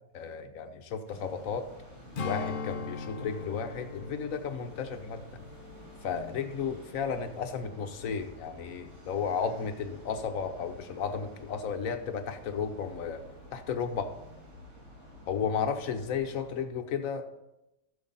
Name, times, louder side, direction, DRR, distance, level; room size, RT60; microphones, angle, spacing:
voice 1, 0.1-1.7 2.2-5.4 6.0-13.2 13.5-14.0 15.3-17.4, left 6 dB, 60° left, 7 dB, 1.1 m, -33 dB
sound 1, 1.0-16.6, equal, 45° right, 4.4 m, -51 dB
Strum, 2.2-6.9 7.2-7.5, left 4 dB, 90° left, 0.4 m, -40 dB
12.5 x 7.3 x 4.0 m, 0.91 s
omnidirectional pair, 1.8 m